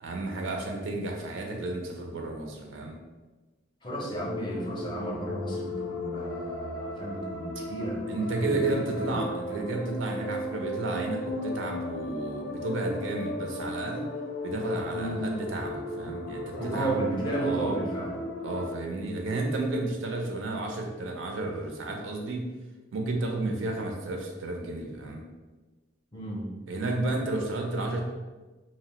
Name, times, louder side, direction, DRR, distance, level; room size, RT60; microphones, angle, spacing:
voice 1, 0.0-3.0 8.1-14.1 14.4-17.0 17.4-17.8 18.4-22.5 22.9-25.2 26.7-28.0, right 2 dB, 80° right, 2 dB, 0.5 m, -32 dB
voice 2, 3.8-8.0 8.4-9.1 9.5-9.7 14.9-15.2 16.6-18.2 23.3-23.6 26.1-26.5, right 1 dB, 25° left, -3 dB, 0.5 m, -33 dB
sound 1, 4.1-18.7, left 1 dB, 80° left, 0.4 m, -36 dB
2.7 x 2.0 x 2.8 m, 1.2 s
head